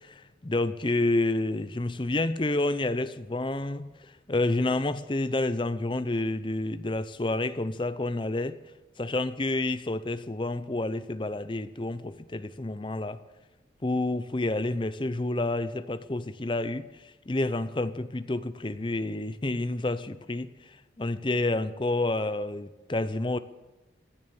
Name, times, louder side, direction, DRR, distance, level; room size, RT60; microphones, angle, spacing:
voice 1, 0.0-8.6 9.0-13.2 13.8-16.9 17.3-20.5 21.0-23.4, left 2 dB, 25° left, 13 dB, 0.6 m, -29 dB
16.0 x 11.0 x 7.0 m, 1.1 s
head